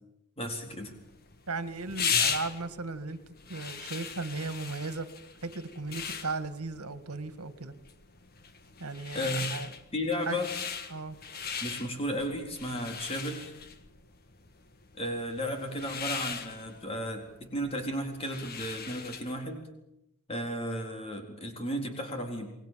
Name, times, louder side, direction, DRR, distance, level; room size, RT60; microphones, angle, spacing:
voice 1, 0.4-0.9 9.1-9.5 9.9-10.5 11.6-13.5 15.0-17.2 17.5-19.7 20.3-22.5, equal, 25° left, 3 dB, 4.0 m, -34 dB
sound 1, 0.9-19.4, left 6 dB, 45° left, 1.6 m, -38 dB
voice 2, 1.5-3.2 3.5-5.1 5.4-7.7 8.8-9.7 10.3-10.4 10.9-11.2, right 3 dB, 80° right, 11 dB, 1.9 m, -36 dB
29.0 x 21.0 x 7.6 m, 0.88 s
head